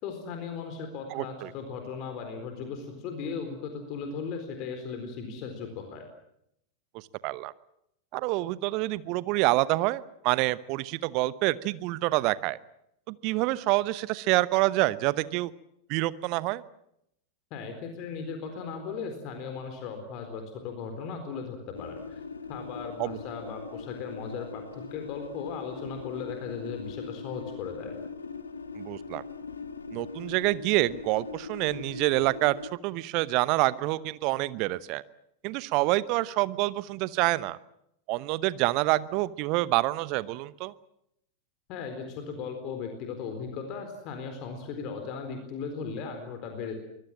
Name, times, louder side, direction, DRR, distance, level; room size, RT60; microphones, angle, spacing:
voice 1, 0.0-6.0 17.5-22.2 22.5-28.0 41.7-46.7, left 5 dB, 40° left, 6 dB, 4.1 m, -37 dB
voice 2, 1.1-1.5 7.2-7.5 8.1-12.6 13.1-15.5 15.9-16.6 23.0-23.1 28.8-29.2 29.9-35.0 35.4-37.6 38.1-40.7, right 19 dB, 45° right, 18 dB, 0.9 m, -27 dB
sound 1, 21.7-32.7, left 5 dB, 75° left, 1.7 m, -41 dB
25.0 x 21.0 x 7.5 m, 0.78 s
figure-of-eight pair, 90°, 0 cm